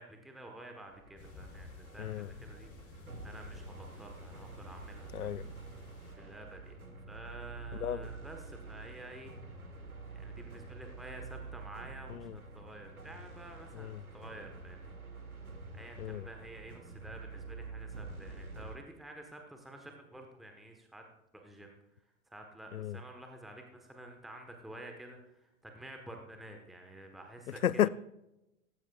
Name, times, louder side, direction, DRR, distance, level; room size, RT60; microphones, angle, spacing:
voice 1, 0.0-2.7 3.2-5.3 6.2-6.8 7.1-9.3 10.1-14.9 15.7-21.0 21.3-21.8 22.3-27.6, right 1 dB, ahead, 1.3 m, -50 dB
sound 1, 0.8-18.8, right 3 dB, 85° right, 1.6 m, -48 dB
sound 2, 1.2-6.1, left 3 dB, 35° left, 3.8 m, -54 dB
voice 2, 2.0-2.3 5.1-5.5 7.7-8.1 12.1-12.4 13.7-14.0 16.0-16.3 22.7-23.0 27.5-27.9, left 10 dB, 85° left, 0.5 m, -33 dB
16.0 x 15.0 x 2.4 m
figure-of-eight pair, 95°, 42 cm